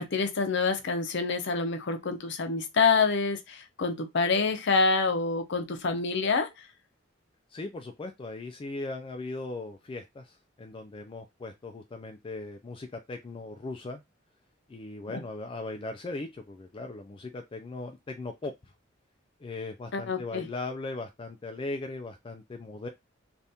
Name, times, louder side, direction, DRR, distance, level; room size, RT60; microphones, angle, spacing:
voice 1, 0.0-6.5 15.1-15.2 19.9-20.5, left 4 dB, 60° left, 0.6 m, -27 dB
voice 2, 7.5-14.0 14.7-18.7 19.4-22.9, left 2 dB, 25° left, 0.3 m, -38 dB
3.4 x 2.5 x 2.7 m
head